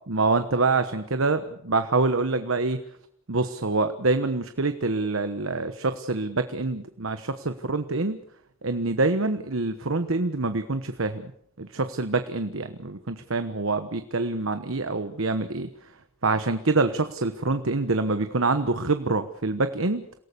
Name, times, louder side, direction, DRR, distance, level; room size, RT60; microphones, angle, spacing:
voice 1, 0.1-2.8 3.3-8.2 8.6-11.3 11.6-15.7 16.2-20.1, right 3 dB, 65° right, 9 dB, 1.1 m, -26 dB
28.0 x 18.0 x 6.9 m, 0.71 s
head